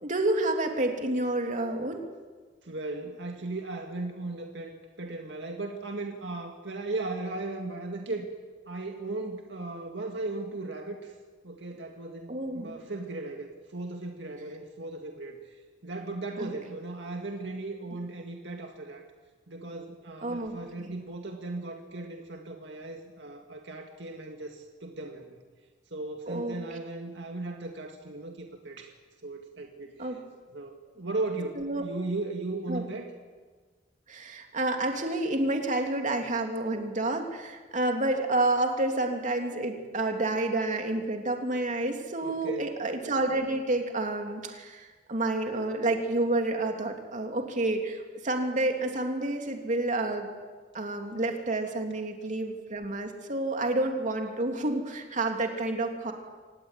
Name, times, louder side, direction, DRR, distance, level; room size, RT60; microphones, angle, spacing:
voice 1, 0.0-2.0 12.3-12.7 16.4-16.5 20.2-20.9 26.3-26.6 30.0-30.2 31.6-31.8 32.7-32.8 34.1-50.3 50.7-56.1, right 2 dB, 45° right, 3 dB, 3.0 m, -29 dB
voice 2, 2.6-8.3 8.7-11.2 11.4-19.1 19.5-25.4 25.9-28.9 29.2-30.2 30.5-33.1 42.2-42.8, right 2 dB, 70° right, 3 dB, 2.2 m, -37 dB
25.5 x 19.0 x 9.3 m, 1.4 s
head